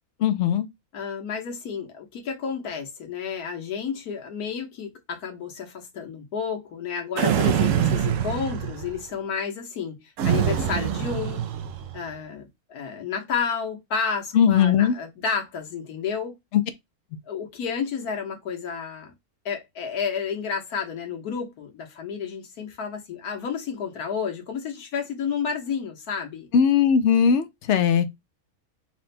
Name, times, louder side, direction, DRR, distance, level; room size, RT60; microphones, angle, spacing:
voice 1, 0.2-0.7 14.3-14.9 16.5-16.6 26.5-28.0, left 8 dB, 65° left, 0.7 m, -19 dB
voice 2, 0.9-10.0 10.2-11.4 11.9-16.3 17.3-19.1 19.4-26.5, left 6 dB, 85° left, 1.5 m, -31 dB
sound 1, 7.2-9.0 10.2-12.0, right 10 dB, 65° right, 0.9 m, -24 dB
4.2 x 2.2 x 4.1 m
omnidirectional pair, 1.6 m